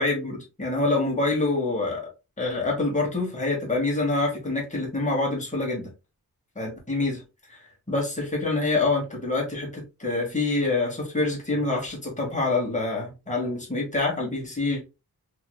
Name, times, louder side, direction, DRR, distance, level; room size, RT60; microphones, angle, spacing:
voice 1, 0.0-2.1 2.4-5.9 6.5-7.2 7.5-7.6 7.9-14.8, left 2 dB, 20° left, 1.4 m, -26 dB
3.1 x 2.9 x 2.3 m
wide cardioid pair, 90°, 37 cm